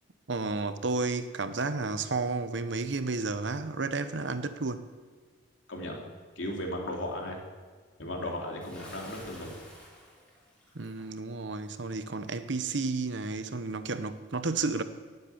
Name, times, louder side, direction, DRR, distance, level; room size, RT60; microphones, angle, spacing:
voice 1, 0.3-4.9 10.7-14.8, right 3 dB, 70° right, 0.9 m, -32 dB
voice 2, 5.7-6.0 6.4-7.4 8.0-9.5, left 1 dB, 80° left, 3.2 m, -36 dB
Bathtub (filling or washing) / Splash splatter, 8.6-11.1, equal, 5° left, 4.0 m, -50 dB
18.5 x 8.3 x 7.1 m
head